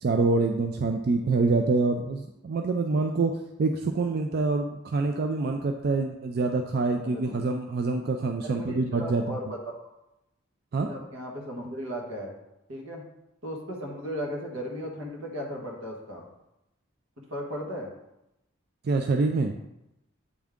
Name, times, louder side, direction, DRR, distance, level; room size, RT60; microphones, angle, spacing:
voice 1, 0.0-9.4 10.7-10.9 18.8-19.6, right 3 dB, 50° right, 4 dB, 0.3 m, -26 dB
voice 2, 7.0-7.4 8.4-9.8 10.9-12.3 12.7-13.0 13.4-16.3 17.2-17.9, equal, 85° right, 0 dB, 1.4 m, -36 dB
8.2 x 3.6 x 3.5 m, 0.89 s
head